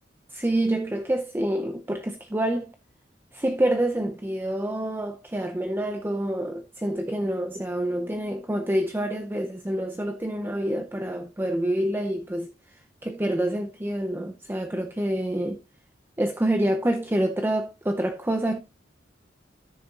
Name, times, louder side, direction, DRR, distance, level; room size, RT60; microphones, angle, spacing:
voice 1, 0.3-2.7 3.3-12.5 13.0-15.6 16.2-18.6, right 1 dB, 10° right, 0.6 m, -27 dB
13.5 x 6.7 x 2.4 m
head